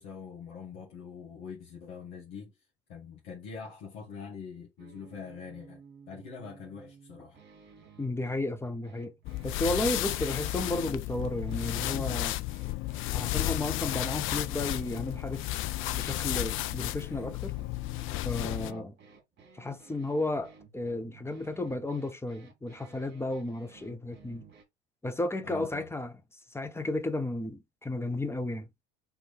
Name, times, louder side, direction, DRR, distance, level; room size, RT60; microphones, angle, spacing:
voice 1, 0.0-2.5 2.9-7.4 18.6-18.9 25.4-25.9, left 6 dB, 60° left, 1.6 m, -44 dB
sound 1, 4.8-24.6, right 6 dB, 30° right, 1.7 m, -55 dB
voice 2, 8.0-9.1 9.4-12.4 13.1-15.5 15.9-17.6 18.2-18.9 19.6-24.4 25.0-26.1 26.5-28.7, left 2 dB, 5° left, 0.9 m, -33 dB
sound 2, 9.2-18.7, left 16 dB, 40° left, 0.4 m, -33 dB
3.6 x 3.2 x 4.2 m
hypercardioid pair, 70°, 34 cm